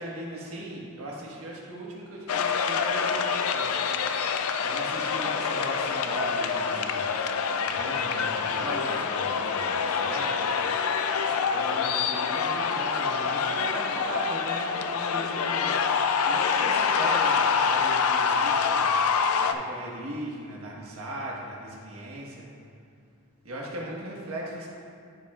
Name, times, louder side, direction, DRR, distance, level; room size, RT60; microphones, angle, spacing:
voice 1, 0.0-3.7 4.6-7.1 7.6-10.6 11.5-15.8 16.2-18.9 19.4-22.5 23.4-24.7, right 1 dB, 70° right, -3 dB, 1.5 m, -38 dB
sound 1, 2.3-19.5, left 6 dB, 75° left, 0.4 m, -26 dB
13.5 x 5.4 x 2.4 m, 2.3 s
head